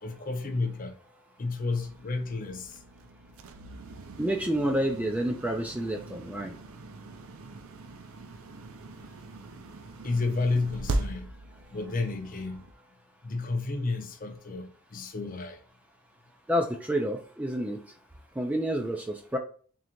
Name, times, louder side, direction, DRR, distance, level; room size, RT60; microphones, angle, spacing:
voice 1, 0.0-0.9 1.4-2.8 10.0-11.3 11.7-12.6 13.2-15.6, left 3 dB, 40° left, 0.5 m, -31 dB
sound 1, 1.7-12.7, right 2 dB, 75° right, 0.5 m, -40 dB
voice 2, 4.2-6.5 16.5-17.8 18.4-19.4, equal, 5° right, 0.3 m, -29 dB
3.8 x 3.2 x 3.0 m
head